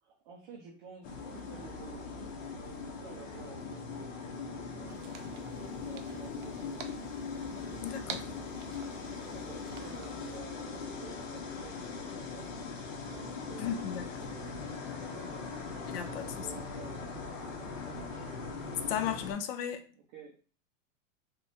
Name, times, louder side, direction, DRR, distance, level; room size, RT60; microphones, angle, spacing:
voice 1, 0.0-4.2 4.7-6.7 9.3-12.5 13.1-17.1 17.6-18.2 19.9-20.5, right 5 dB, 40° right, -2 dB, 0.7 m, -51 dB
sound 1, 1.0-19.3, left 4 dB, 80° left, 1.0 m, -40 dB
sound 2, 4.9-10.4, right 7 dB, 75° right, 0.7 m, -49 dB
voice 2, 7.8-8.2 13.6-14.0 15.9-16.5 18.9-19.8, left 9 dB, 50° left, 8 dB, 0.5 m, -35 dB
3.4 x 3.1 x 2.7 m, 0.40 s
supercardioid pair, 165°, 38 cm